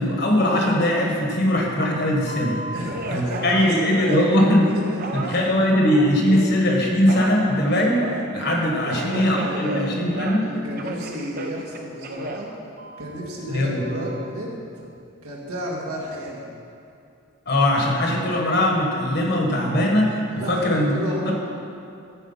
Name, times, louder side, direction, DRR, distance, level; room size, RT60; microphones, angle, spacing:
voice 1, 0.0-2.6 3.1-4.7 5.1-8.0 8.3-10.5 13.5-13.8 17.5-20.2 20.5-21.3, left 1 dB, 50° left, 0 dB, 1.5 m, -20 dB
Telephone, 2.3-6.6 7.1-10.5 10.8-13.3 13.8-14.3, right 2 dB, 45° right, 0.6 m, -34 dB
voice 2, 2.7-4.2 4.7-5.5 8.9-9.9 10.4-12.5 13.0-14.6 15.2-16.4 20.3-21.3, equal, 90° right, -3 dB, 2.0 m, -32 dB
13.5 x 4.9 x 5.7 m, 2.5 s
head